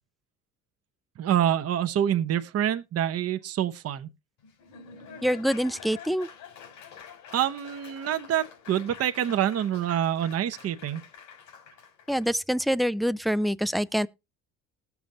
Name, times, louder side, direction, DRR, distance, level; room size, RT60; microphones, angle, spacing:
voice 1, 1.2-4.1 7.3-11.0, right 10 dB, 45° right, 0.9 m, -26 dB
Laughter / Applause, 4.4-12.3, left 7 dB, 70° left, 3.9 m, -47 dB
voice 2, 5.2-6.3 12.1-14.1, equal, ahead, 0.5 m, -25 dB
19.5 x 7.1 x 2.7 m
supercardioid pair, 75°, 33 cm